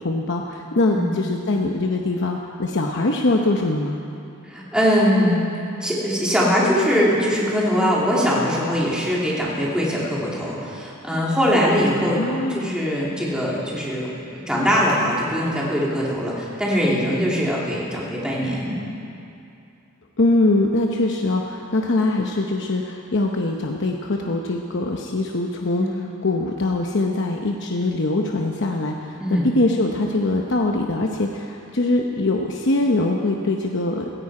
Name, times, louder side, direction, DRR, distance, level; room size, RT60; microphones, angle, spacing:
voice 1, 0.0-4.0 12.2-12.7 20.2-34.1, left 2 dB, 55° left, 1 dB, 0.8 m, -22 dB
voice 2, 4.4-5.4 5.8-12.2 12.5-18.7 25.8-26.0 29.2-29.5, equal, 5° right, -5 dB, 2.9 m, -21 dB
17.0 x 15.0 x 4.9 m, 2.7 s
head